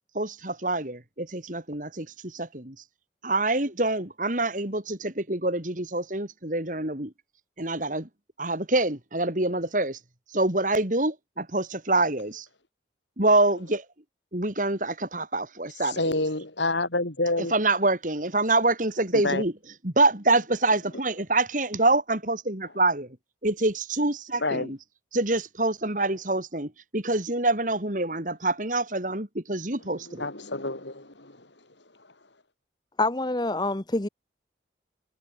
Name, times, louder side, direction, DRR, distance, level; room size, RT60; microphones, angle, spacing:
voice 1, 0.1-2.8 3.2-7.1 7.6-8.1 8.4-10.0 10.3-11.2 11.5-12.4 13.2-13.8 14.3-16.2 17.4-19.5 19.8-23.1 23.4-24.8 25.1-30.3, right 2 dB, 45° right, 3.2 m, -26 dB
voice 2, 15.8-17.5 19.1-19.4 24.4-24.7 30.1-31.5, left 2 dB, 80° left, 5.7 m, -28 dB
voice 3, 33.0-34.1, left 2 dB, 25° left, 0.9 m, -26 dB
head